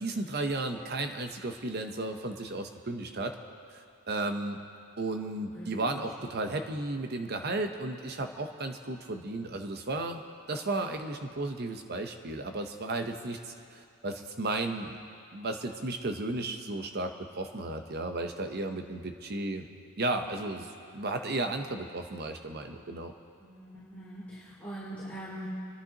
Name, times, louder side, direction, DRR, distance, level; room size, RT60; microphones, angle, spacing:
voice 1, 0.0-3.4 4.1-4.6 5.0-10.2 10.5-15.0 15.3-19.6 20.0-23.1, right 2 dB, 45° right, 5 dB, 0.8 m, -34 dB
voice 2, 5.5-6.0 23.4-25.5, right 1 dB, 5° left, -12 dB, 3.1 m, -43 dB
29.0 x 10.5 x 2.9 m, 2.5 s
head